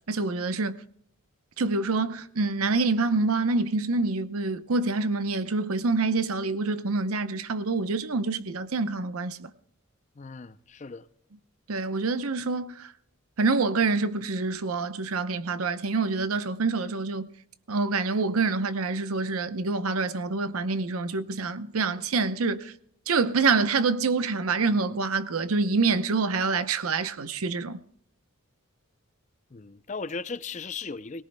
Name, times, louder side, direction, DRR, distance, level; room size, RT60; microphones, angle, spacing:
voice 1, 0.1-0.8 1.6-9.5 11.7-12.9 13.4-17.3 17.7-22.7 23.1-27.8, right 3 dB, 85° right, 0.8 m, -26 dB
voice 2, 10.2-11.1 29.5-31.2, left 4 dB, 35° left, 0.5 m, -37 dB
20.5 x 18.5 x 2.2 m
head